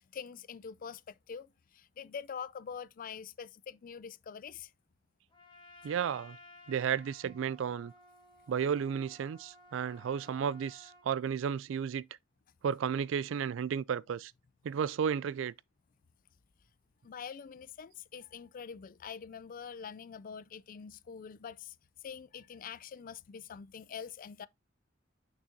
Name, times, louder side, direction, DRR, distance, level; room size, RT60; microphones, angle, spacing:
voice 1, 0.0-4.7 17.0-21.7 22.0-24.5, left 7 dB, 45° left, 0.4 m, -45 dB
Trumpet, 5.3-11.1, left 2 dB, 25° left, 1.7 m, -57 dB
voice 2, 5.8-6.4 6.7-7.9 8.5-12.1 12.6-14.3 14.6-15.5, right 7 dB, 70° right, 0.3 m, -33 dB
6.5 x 6.0 x 2.7 m
head